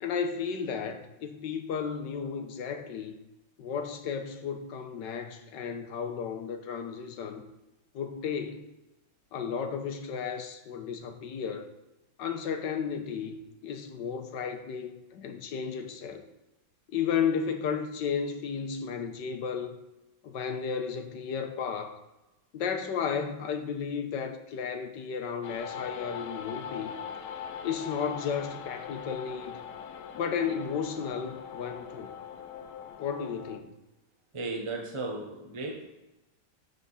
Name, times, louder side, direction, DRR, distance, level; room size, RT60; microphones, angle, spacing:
voice 1, 0.0-3.1 3.6-7.4 7.9-8.7 9.3-11.7 12.2-16.2 16.9-19.8 20.2-22.0 22.5-26.9 27.6-29.6 30.1-32.1 33.0-33.7, left 6 dB, 65° left, 6 dB, 1.5 m, -33 dB
sound 1, 25.4-33.6, left 8 dB, 90° left, 1.6 m, -41 dB
voice 2, 34.3-35.8, right 2 dB, 20° right, 0 dB, 1.0 m, -35 dB
13.5 x 4.8 x 4.2 m, 0.98 s
omnidirectional pair, 2.2 m